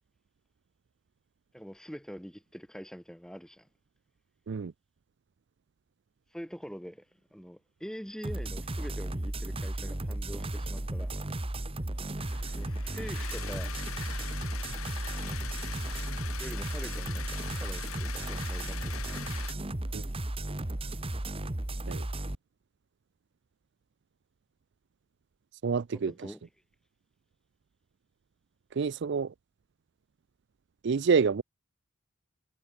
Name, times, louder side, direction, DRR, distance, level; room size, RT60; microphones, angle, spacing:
voice 1, 1.5-3.7 6.3-7.1 7.3-11.2 12.4-13.7 16.4-19.2 25.9-26.4, equal, 5° left, 5.7 m, -44 dB
sound 1, 8.2-22.4, right 1 dB, 25° right, 1.2 m, -34 dB
sound 2, 12.2-19.5, left 9 dB, 80° left, 1.9 m, -42 dB
voice 2, 25.6-26.1 28.7-29.3 30.8-31.4, right 5 dB, 55° right, 0.4 m, -27 dB
head